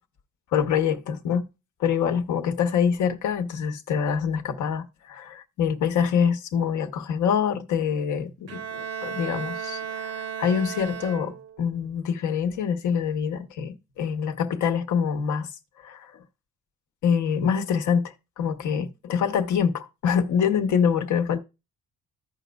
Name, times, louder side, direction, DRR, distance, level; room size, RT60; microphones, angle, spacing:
voice 1, 0.5-1.4 1.8-15.5 15.8-16.2 17.0-21.4, left 7 dB, 75° left, 1.0 m, -25 dB
Bowed string instrument, 8.5-11.7, right 7 dB, 55° right, 0.9 m, -34 dB
15.0 x 5.2 x 2.2 m
cardioid pair, 90°, 30 cm